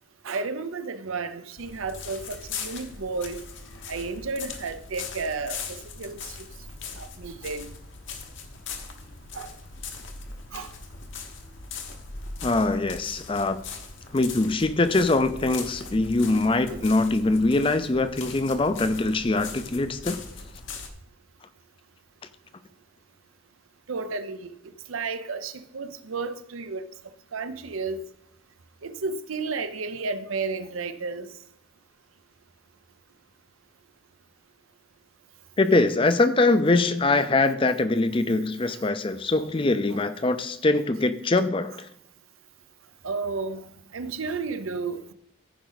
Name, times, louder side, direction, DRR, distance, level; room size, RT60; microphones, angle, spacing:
voice 1, 0.2-3.4 3.9-6.5 6.9-7.7 9.3-9.5 10.5-10.7 16.5-16.9 23.9-24.5 24.9-26.9 27.3-28.0 28.8-31.3 39.9-40.0 43.0-45.1, right 4 dB, 85° right, 0.7 m, -32 dB
sound 1, 1.6-20.9, left 5 dB, 65° left, 1.2 m, -40 dB
voice 2, 12.4-13.6 14.1-20.2 35.6-41.9, left 2 dB, 25° left, 0.5 m, -23 dB
14.5 x 5.1 x 4.0 m
head